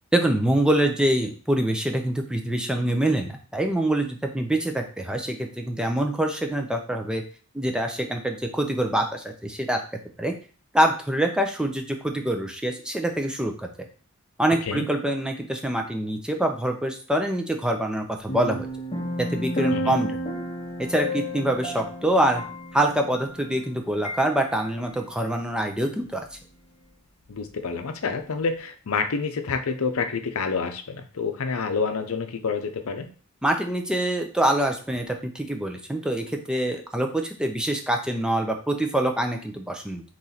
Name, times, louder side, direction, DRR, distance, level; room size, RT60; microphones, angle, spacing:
voice 1, 0.1-7.2 7.5-9.8 10.2-10.3 10.7-13.7 14.4-18.7 19.2-20.2 20.9-22.4 22.7-26.4 33.4-40.0, right 1 dB, 5° right, 3 dB, 0.5 m, -25 dB
sound 1, 18.3-23.7 24.0-24.2, equal, 25° left, 0.8 m, -31 dB
voice 2, 27.3-33.1, left 5 dB, 75° left, 7 dB, 0.6 m, -28 dB
4.2 x 3.1 x 3.9 m, 0.39 s
head